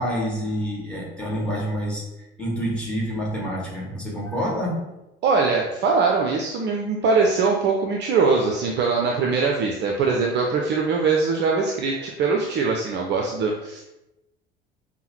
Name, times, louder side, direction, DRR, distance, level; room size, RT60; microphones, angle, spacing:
voice 1, 0.0-4.9, equal, 5° left, -3 dB, 1.5 m, -27 dB
voice 2, 5.2-13.8, right 4 dB, 35° right, 1 dB, 0.5 m, -22 dB
5.4 x 2.1 x 3.0 m, 0.94 s
figure-of-eight pair, 60°, 31 cm